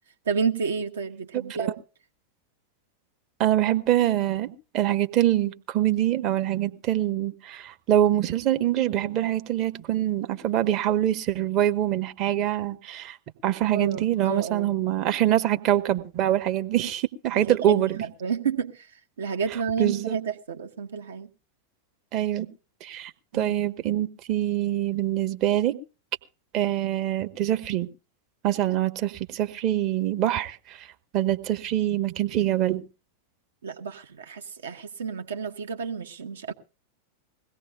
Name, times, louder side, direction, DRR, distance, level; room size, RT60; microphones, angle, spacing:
voice 1, 0.3-1.7 13.7-14.7 17.5-18.9 19.2-21.3 23.3-23.5 33.6-36.5, right 6 dB, 65° right, 1.0 m, -30 dB
voice 2, 1.3-1.8 3.4-13.2 13.4-18.0 19.8-20.2 22.1-22.5 22.8-25.7 26.5-27.9 28.4-30.9 31.1-32.8, right 12 dB, 40° right, 1.0 m, -24 dB
21.5 x 16.5 x 2.3 m
figure-of-eight pair, 90°, 0 cm